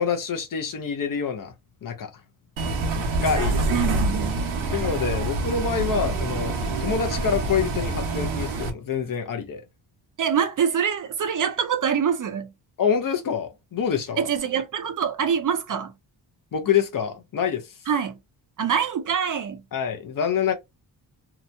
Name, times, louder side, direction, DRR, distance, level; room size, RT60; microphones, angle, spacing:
voice 1, 0.0-1.5 1.8-2.1 3.2-3.9 4.7-9.6 12.8-14.3 16.5-17.7 19.7-20.5, left 7 dB, 45° left, 0.6 m, -26 dB
Bus, 2.6-8.7, right 2 dB, 85° right, 0.9 m, -26 dB
voice 2, 3.7-4.9 10.2-12.5 14.2-15.9 17.9-18.2 18.6-19.6, right 7 dB, 45° right, 0.5 m, -25 dB
2.8 x 2.2 x 2.5 m
wide cardioid pair, 130°, 46 cm